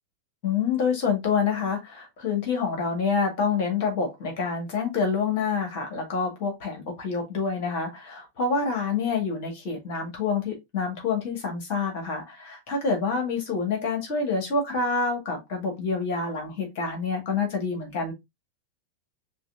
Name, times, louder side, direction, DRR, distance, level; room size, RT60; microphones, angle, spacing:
voice 1, 0.4-18.1, left 5 dB, 45° left, 1.9 m, -27 dB
6.3 x 2.5 x 2.6 m
figure-of-eight pair, 90°, 0 cm